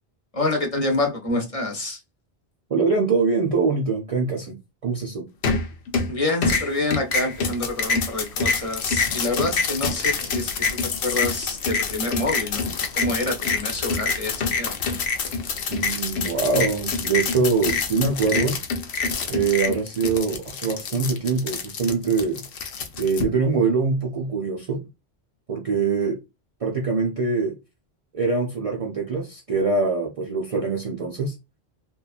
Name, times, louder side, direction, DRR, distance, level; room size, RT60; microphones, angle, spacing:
voice 1, 0.3-2.0 6.1-10.6 11.0-14.8, left 2 dB, 40° left, 0.7 m, -27 dB
voice 2, 2.7-5.3 15.7-18.6 19.3-22.4 23.0-24.8 25.5-26.2 26.6-27.6 28.1-31.4, right 4 dB, 50° right, 0.4 m, -23 dB
sound 1, 5.4-6.1 6.4-23.2, left 4 dB, 85° left, 0.9 m, -26 dB
2.9 x 2.3 x 2.4 m
omnidirectional pair, 1.1 m